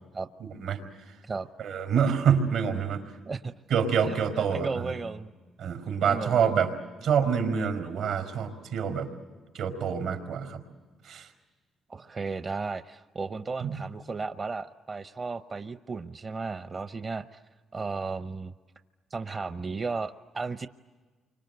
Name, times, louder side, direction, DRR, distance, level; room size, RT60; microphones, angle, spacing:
voice 1, 0.4-0.8 1.1-1.2 1.6-3.2 3.7-4.9 5.6-6.7 7.0-9.1 9.5-10.6 11.0-11.3 13.6-13.7, right 7 dB, 85° right, 5 dB, 4.4 m, -27 dB
voice 2, 4.0-5.3 6.0-6.7 11.9-17.4 17.7-18.5 19.1-20.7, right 4 dB, 35° right, 9 dB, 0.7 m, -34 dB
29.5 x 25.0 x 7.9 m, 1.4 s
cardioid pair, 90°, 0 cm